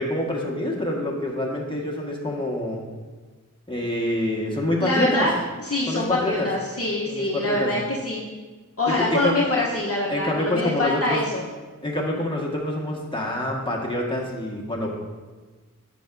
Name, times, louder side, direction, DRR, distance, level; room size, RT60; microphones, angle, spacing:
voice 1, 0.0-2.8 3.7-5.3 5.9-6.5 7.1-7.7 8.9-9.3 10.1-11.2 11.8-14.9, left 1 dB, 15° left, -2 dB, 1.5 m, -26 dB
voice 2, 4.8-5.3 5.6-8.2 8.8-11.4, left 2 dB, 45° left, -4 dB, 1.0 m, -25 dB
10.5 x 5.9 x 2.6 m, 1.3 s
wide cardioid pair, 45°, 32 cm